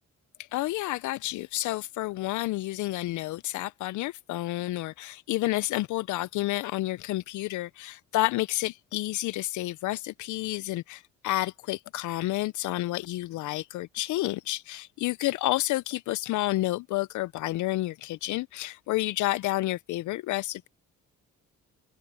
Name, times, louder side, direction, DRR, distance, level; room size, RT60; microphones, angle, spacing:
voice 1, 0.4-20.7, left 17 dB, 75° left, 0.5 m, -30 dB
cardioid pair, 90°, 30 cm